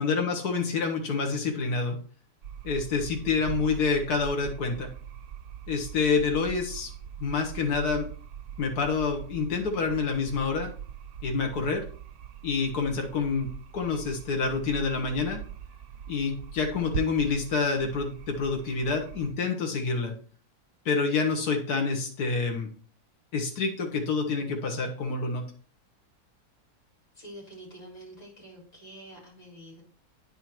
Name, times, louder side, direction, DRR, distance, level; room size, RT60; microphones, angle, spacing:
voice 1, 0.0-2.0 2.6-4.9 5.7-6.9 7.2-8.1 8.6-10.7 11.2-11.9 12.4-15.4 16.1-20.2 20.9-22.7 23.3-25.4, left 4 dB, 90° left, 3 dB, 1.8 m, -27 dB
sound 1, 2.4-19.3, right 9 dB, 75° right, 1.3 m, -41 dB
voice 2, 27.1-29.8, right 1 dB, 50° left, -3 dB, 4.5 m, -47 dB
9.4 x 4.4 x 4.5 m, 0.42 s
omnidirectional pair, 1.6 m